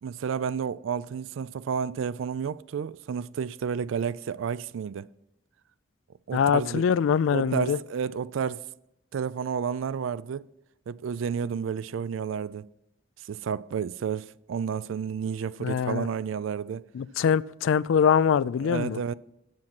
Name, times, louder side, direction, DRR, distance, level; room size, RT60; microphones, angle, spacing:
voice 1, 0.0-5.1 6.3-6.8 7.3-8.6 9.1-10.4 10.9-12.6 13.2-16.8 18.6-19.1, right 7 dB, 85° right, 0.3 m, -31 dB
voice 2, 6.3-7.8 15.6-16.1 16.9-19.0, left 7 dB, 85° left, 0.3 m, -23 dB
7.6 x 7.2 x 6.0 m
head